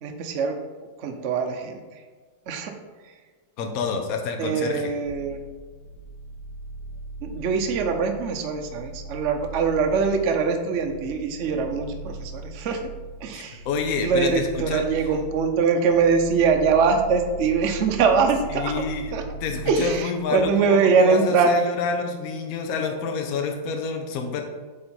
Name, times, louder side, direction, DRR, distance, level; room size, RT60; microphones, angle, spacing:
voice 1, 0.0-0.6 1.0-1.8 2.5-2.7 3.0-3.1 4.4-5.4 7.2-12.8 13.2-13.6 14.0-18.7 19.1-19.2 19.7-21.5, right 5 dB, 60° right, 5 dB, 0.7 m, -22 dB
voice 2, 3.6-4.9 13.3-14.8 18.5-24.4, left 5 dB, 60° left, 4 dB, 1.1 m, -28 dB
sound 1, 5.0-19.9, right 3 dB, 90° left, 2.1 m, -39 dB
8.3 x 3.8 x 4.3 m, 1.4 s
omnidirectional pair, 2.1 m